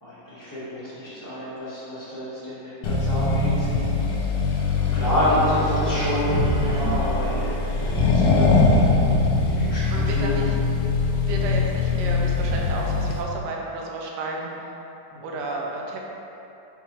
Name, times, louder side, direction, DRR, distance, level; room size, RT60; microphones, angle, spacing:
voice 1, 0.0-4.0 4.4-4.6 4.9-8.9 9.4-10.5 15.1-15.4, equal, 10° left, -11 dB, 1.0 m, -29 dB
Accelerating revving vroom, 2.8-13.2, left 3 dB, 75° left, 1.1 m, -22 dB
Bowed string instrument, 4.5-8.9, right 4 dB, 45° left, 1.1 m, -35 dB
voice 2, 9.9-10.4 11.2-14.5 15.2-16.0, right 3 dB, 70° right, -1 dB, 1.1 m, -32 dB
4.7 x 4.0 x 2.9 m, 3.0 s
omnidirectional pair, 2.2 m